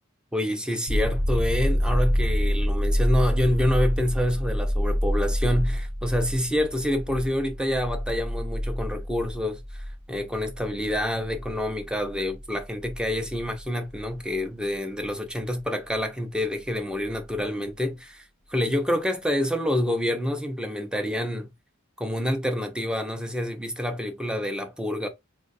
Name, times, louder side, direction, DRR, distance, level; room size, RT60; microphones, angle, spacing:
voice 1, 0.3-18.2 18.5-21.5 22.0-25.1, left 1 dB, 5° right, 0.5 m, -27 dB
sound 1, 0.9-14.4 17.1-17.2, equal, 45° right, 0.9 m, -27 dB
3.8 x 2.2 x 2.6 m
head